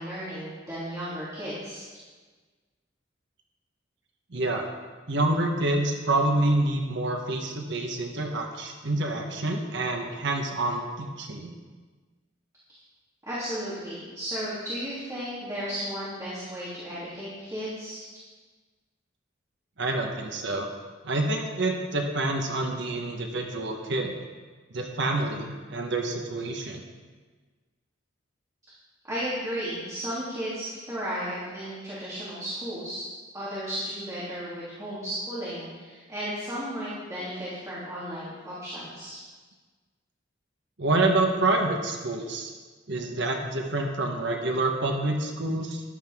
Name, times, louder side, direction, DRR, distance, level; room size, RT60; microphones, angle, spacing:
voice 1, 0.0-1.8 13.3-18.0 29.1-33.0 33.3-39.2, equal, 15° right, -10 dB, 3.1 m, -34 dB
voice 2, 4.3-4.7 5.1-11.5 19.8-20.7 21.0-24.1 24.7-26.8 40.8-42.5 42.9-45.8, right 2 dB, 65° right, 3 dB, 1.3 m, -27 dB
13.5 x 11.5 x 3.7 m, 1.4 s
head